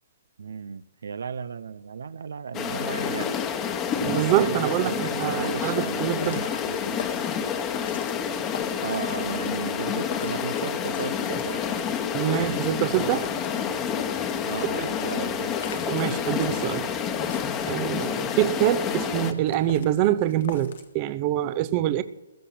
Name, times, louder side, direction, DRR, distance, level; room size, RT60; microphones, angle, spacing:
voice 1, 0.4-3.6 4.0-7.1 8.8-11.6 14.4-15.6, right 6 dB, 80° right, 0.6 m, -35 dB
sound 1, 2.5-19.3, left 7 dB, 20° left, 1.2 m, -28 dB
voice 2, 4.1-6.4 12.1-13.4 14.8-14.9 15.9-16.9 17.7-22.0, right 13 dB, 30° right, 0.7 m, -25 dB
sound 2, 5.7-20.9, left 7 dB, 60° left, 1.7 m, -44 dB
15.5 x 12.0 x 6.0 m
hypercardioid pair, 150°, 0 cm